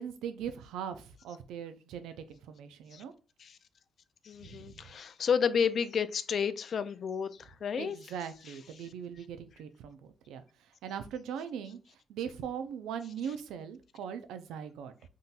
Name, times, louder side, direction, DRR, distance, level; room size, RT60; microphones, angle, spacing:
voice 1, 0.0-3.1 4.4-4.9 7.8-10.4 10.8-11.8 12.1-14.9, right 8 dB, 85° right, 0.4 m, -40 dB
voice 2, 4.2-8.0 8.5-8.6, left 7 dB, 55° left, 0.3 m, -31 dB
3.7 x 2.7 x 2.4 m
cardioid pair, 90°, 0 cm